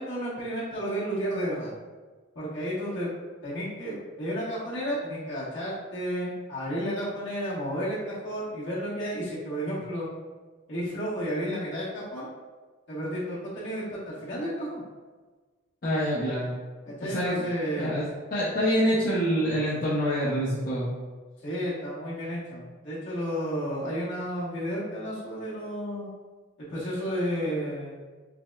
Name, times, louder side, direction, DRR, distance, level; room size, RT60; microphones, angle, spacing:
voice 1, 0.0-1.7 2.3-3.1 3.4-10.1 10.7-12.3 12.9-14.8 16.9-17.9 21.4-26.1 26.6-28.0, equal, 60° left, -8 dB, 1.3 m, -32 dB
voice 2, 15.8-16.5 17.0-17.4 17.8-20.9, equal, 45° left, -8 dB, 0.6 m, -26 dB
5.8 x 2.1 x 2.3 m, 1.4 s
head